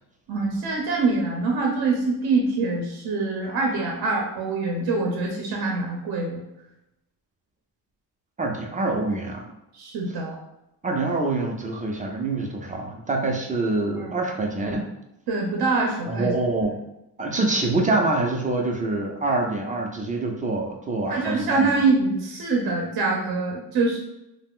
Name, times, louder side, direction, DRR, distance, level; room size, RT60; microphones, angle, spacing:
voice 1, 0.3-6.4 9.8-10.4 14.0-14.2 15.3-16.3 21.1-24.0, right 3 dB, 65° right, -1 dB, 0.7 m, -24 dB
voice 2, 8.4-9.5 10.8-14.9 16.1-16.8 17.2-21.7, right 2 dB, 20° right, 1 dB, 0.4 m, -25 dB
2.4 x 2.0 x 3.5 m, 0.89 s
cardioid pair, 105°, 40 cm